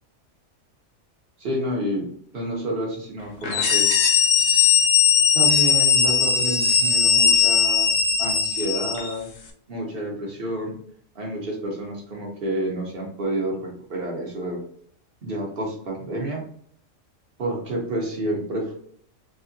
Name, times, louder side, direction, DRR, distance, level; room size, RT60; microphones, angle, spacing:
voice 1, 1.4-3.9 5.3-9.3 9.7-10.8 11.1-14.6 15.2-16.4 17.4-18.7, right 1 dB, 50° right, -1 dB, 1.2 m, -29 dB
sound 1, 3.4-9.1, left 7 dB, 75° left, 1.0 m, -19 dB
3.4 x 2.7 x 2.6 m, 0.63 s
omnidirectional pair, 1.3 m